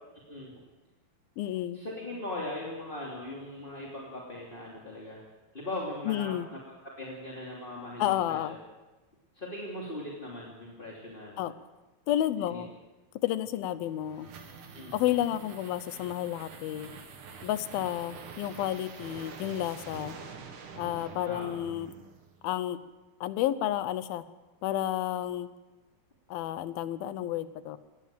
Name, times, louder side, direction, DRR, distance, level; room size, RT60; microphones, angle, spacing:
voice 1, 0.1-0.5 1.7-5.2 5.5-8.6 9.3-11.4 12.5-12.6 14.7-15.0 21.2-21.5, left 1 dB, 15° left, -3 dB, 2.5 m, -39 dB
voice 2, 1.4-1.8 6.1-6.5 8.0-8.6 11.4-11.5 12.1-12.7 13.2-14.3 14.9-16.9 17.4-20.2 20.8-21.9 22.4-22.8 23.2-24.2 24.6-25.5 26.3-27.8, left 12 dB, 75° left, 14 dB, 2.6 m, -31 dB
sound 1, 13.6-22.5, right 5 dB, 55° right, 3.1 m, -46 dB
19.5 x 17.5 x 7.6 m, 1.2 s
omnidirectional pair, 4.5 m